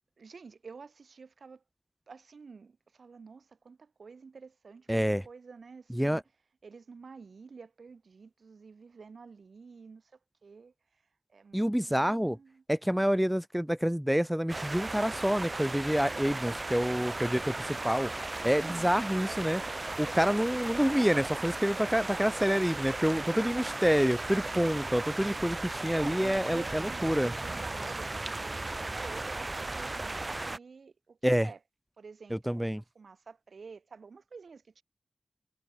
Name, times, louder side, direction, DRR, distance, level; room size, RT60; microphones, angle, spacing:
voice 1, 0.2-1.6 2.1-6.2 6.6-10.1 10.4-10.7 11.3-12.6 18.6-18.9 25.9-31.6 32.0-32.7 32.9-34.8, right 5 dB, 70° right, 1.0 m, -49 dB
voice 2, 4.9-5.2 5.9-6.2 11.5-12.4 12.7-18.1 18.4-19.6 20.0-27.3 31.2-31.5 32.3-32.8, equal, 5° right, 0.5 m, -28 dB
sound 1, 14.5-30.6, right 2 dB, 30° right, 1.1 m, -36 dB
wide cardioid pair, 80°, 0 cm